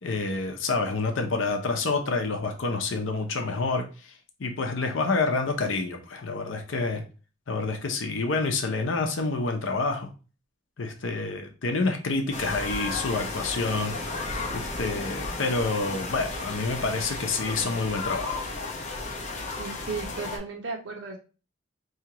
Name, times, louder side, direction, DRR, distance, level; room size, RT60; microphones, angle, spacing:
voice 1, 0.0-4.1 4.4-7.0 7.5-10.1 10.8-13.9 14.5-18.4, left 3 dB, 85° left, 4 dB, 0.7 m, -28 dB
sound 1, 12.3-20.4, left 3 dB, 40° left, 0.9 m, -33 dB
voice 2, 19.6-21.2, right 4 dB, 75° right, -2 dB, 0.9 m, -35 dB
4.8 x 2.8 x 2.8 m, 0.33 s
head